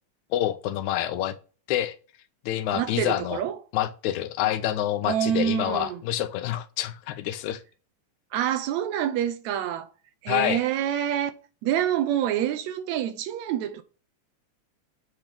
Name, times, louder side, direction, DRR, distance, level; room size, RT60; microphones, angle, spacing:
voice 1, 0.3-1.4 1.7-2.0 2.5-3.4 3.7-7.6 10.3-10.6, left 12 dB, 80° left, 2.0 m, -27 dB
voice 2, 2.7-3.5 5.1-6.0 8.3-9.9 10.2-11.3 11.6-13.8, right 10 dB, 75° right, 2.0 m, -26 dB
8.1 x 3.0 x 5.2 m
omnidirectional pair, 3.4 m